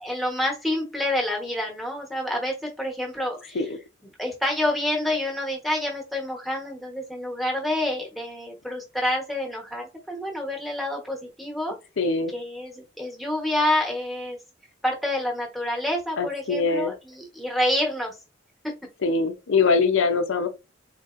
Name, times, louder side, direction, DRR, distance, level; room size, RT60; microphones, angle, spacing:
voice 1, 0.0-3.6 4.2-11.7 12.3-14.4 14.8-18.1 18.6-18.7, left 1 dB, ahead, 1.1 m, -28 dB
voice 2, 12.0-12.3 16.2-16.9 19.0-20.5, left 4 dB, 85° left, 0.6 m, -23 dB
4.0 x 2.8 x 2.5 m
head